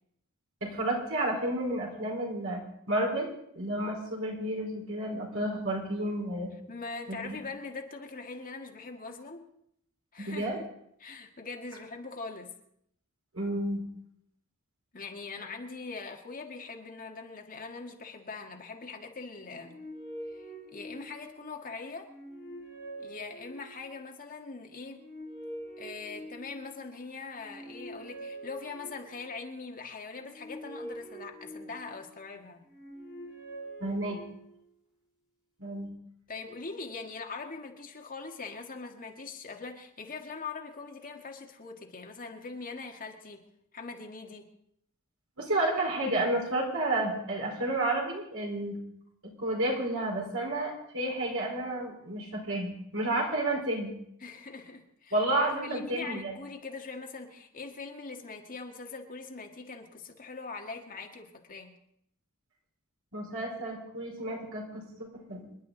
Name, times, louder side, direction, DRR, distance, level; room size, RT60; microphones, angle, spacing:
voice 1, 0.6-3.3 3.5-6.5 7.1-7.4 10.2-10.6 13.3-13.8 33.8-34.2 35.6-35.9 45.4-48.8 49.4-53.9 55.1-56.3 63.1-64.8 65.3-65.4, right 1 dB, 65° right, -1 dB, 4.5 m, -31 dB
voice 2, 6.7-9.4 10.1-10.7 11.0-12.5 14.9-19.8 20.3-20.5 20.7-22.1 23.0-25.0 25.8-32.6 36.3-43.4 43.7-44.5 54.2-55.1 55.6-61.7, left 4 dB, 40° left, 2 dB, 1.8 m, -42 dB
sound 1, 19.3-21.5 22.0-24.0 24.7-26.8 27.3-29.3 30.0-32.1 32.6-34.6, right 1 dB, 5° right, 6.9 m, -45 dB
27.0 x 11.0 x 4.0 m, 0.72 s
head